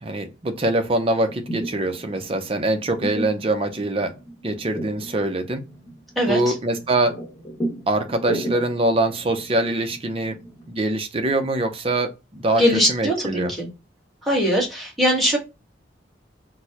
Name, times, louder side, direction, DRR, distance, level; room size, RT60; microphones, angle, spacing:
voice 1, 0.0-4.1 4.4-5.6 6.3-7.2 7.9-10.3 10.7-13.5, right 2 dB, 30° right, 0.5 m, -23 dB
sound 1, 1.2-10.8, right 1 dB, 20° left, 1.2 m, -36 dB
voice 2, 6.2-6.5 12.6-13.7 14.2-15.4, equal, ahead, 1.3 m, -21 dB
4.4 x 2.1 x 2.8 m
head